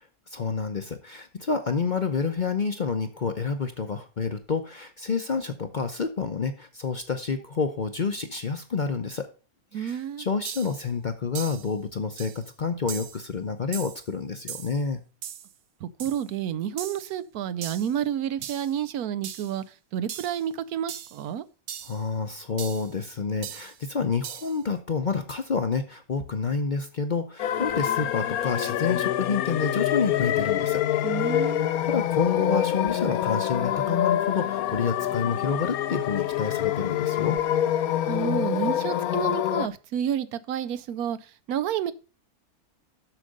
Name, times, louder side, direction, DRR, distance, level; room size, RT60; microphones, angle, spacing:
voice 1, 0.3-9.3 9.7-15.0 21.8-30.8 31.4-31.5 31.8-37.4, left 5 dB, 45° left, 0.7 m, -29 dB
voice 2, 9.7-10.3 15.8-19.6 19.9-21.4 31.0-31.8 38.0-41.9, right 9 dB, 80° right, 1.2 m, -30 dB
sound 1, 9.9-10.0 10.4-10.8 11.3-11.7 12.2-12.4 12.9-13.2 13.7-14.1 14.5-14.8 15.2-15.5 16.0-16.2 16.8-17.1 17.6-17.9 18.4-18.7 19.2-19.6 20.1-20.4 20.9-21.2 21.7-22.0 22.6-22.9 23.4-23.8 24.2-24.6, right 9 dB, 60° right, 0.6 m, -39 dB
sound 2, 27.4-39.7, left 11 dB, 75° left, 1.1 m, -26 dB
7.5 x 6.4 x 6.4 m
omnidirectional pair, 1.6 m